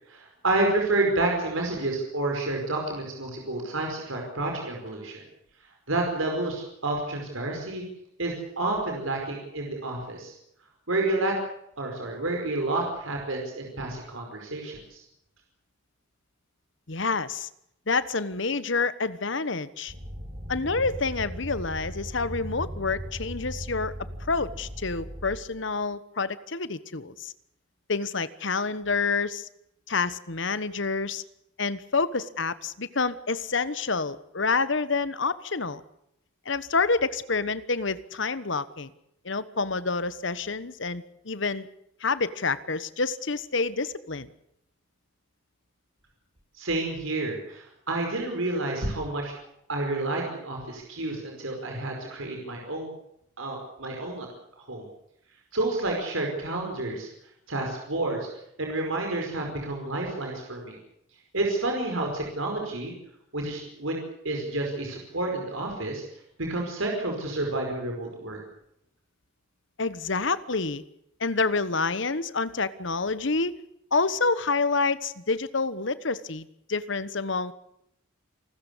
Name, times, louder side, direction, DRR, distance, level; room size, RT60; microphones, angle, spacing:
voice 1, 0.1-5.2 5.9-7.8 8.2-10.3 10.9-11.3 11.8-15.0 46.6-49.3 49.7-52.9 53.4-54.3 54.7-54.9 55.5-57.1 57.5-58.2 58.6-60.8 61.3-62.9 63.3-63.9 64.2-66.0 66.5-68.4, right 2 dB, 80° right, 1 dB, 5.0 m, -29 dB
voice 2, 16.9-17.5 17.9-19.9 20.5-23.9 24.3-27.3 27.9-29.5 29.9-31.2 31.6-35.8 36.4-38.9 39.2-41.7 42.0-44.3 69.8-70.8 71.2-73.5 73.9-77.5, left 4 dB, 60° left, 15 dB, 1.2 m, -28 dB
sound 1, 19.9-25.3, equal, 45° right, 6.7 m, -38 dB
28.0 x 13.5 x 8.4 m, 0.77 s
head